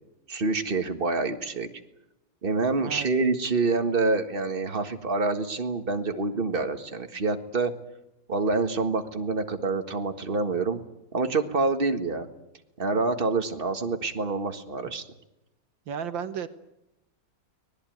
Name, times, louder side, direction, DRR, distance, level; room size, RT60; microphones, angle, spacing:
voice 1, 0.3-1.7 2.4-7.7 8.3-10.8 11.1-12.3 12.8-15.0, right 3 dB, 25° right, 7 dB, 1.6 m, -27 dB
voice 2, 15.9-16.5, right 7 dB, 65° right, 11 dB, 1.7 m, -33 dB
24.5 x 20.0 x 9.3 m, 0.93 s
omnidirectional pair, 2.4 m